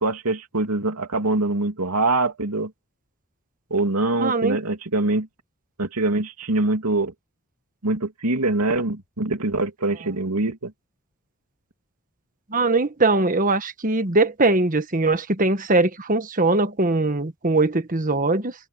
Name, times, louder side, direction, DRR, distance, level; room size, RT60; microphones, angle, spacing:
voice 1, 0.0-2.7 3.7-5.3 5.8-7.1 7.8-10.7, right 2 dB, 90° right, 2.9 m, -24 dB
voice 2, 4.2-4.6 12.5-18.5, right 2 dB, 35° right, 1.4 m, -21 dB
head